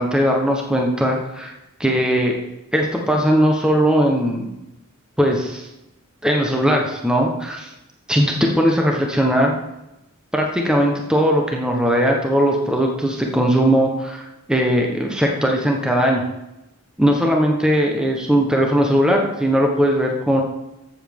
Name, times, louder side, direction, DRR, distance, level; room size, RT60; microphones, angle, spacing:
voice 1, 0.0-1.5 1.8-2.4 2.7-4.5 5.2-5.6 6.2-7.7 8.1-9.5 10.3-16.3 17.0-20.4, equal, 5° right, 0 dB, 1.0 m, -19 dB
14.0 x 7.2 x 3.6 m, 0.93 s
head